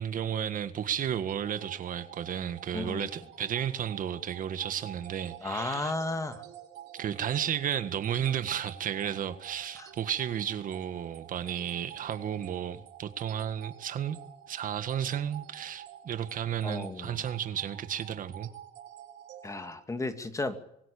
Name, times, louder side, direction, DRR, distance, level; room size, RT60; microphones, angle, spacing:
voice 1, 0.0-5.9 6.9-14.2 14.5-18.5, right 9 dB, 55° right, 1.7 m, -33 dB
sound 1, 1.3-19.7, right 11 dB, 80° right, 5.0 m, -49 dB
voice 2, 2.7-3.1 5.4-6.4 9.8-9.9 16.6-17.2 19.4-20.6, left 2 dB, 20° left, 2.4 m, -34 dB
24.5 x 17.0 x 8.6 m
cardioid pair, 110°, 17 cm